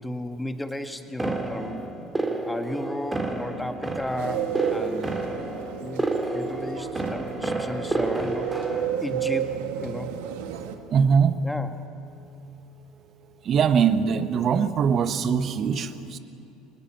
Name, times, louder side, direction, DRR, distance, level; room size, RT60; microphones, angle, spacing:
voice 1, 0.0-1.8 2.4-5.2 5.8-8.5 9.0-10.1 11.4-11.7, left 1 dB, 5° left, 7 dB, 1.8 m, -34 dB
sound 1, 1.2-8.9, right 2 dB, 20° right, 3.2 m, -30 dB
sound 2, 4.2-10.8, right 9 dB, 75° right, 1.6 m, -32 dB
voice 2, 10.9-11.4 13.4-16.2, right 6 dB, 45° right, 11 dB, 1.3 m, -22 dB
23.5 x 20.0 x 7.6 m, 2.7 s
hypercardioid pair, 70°, 0 cm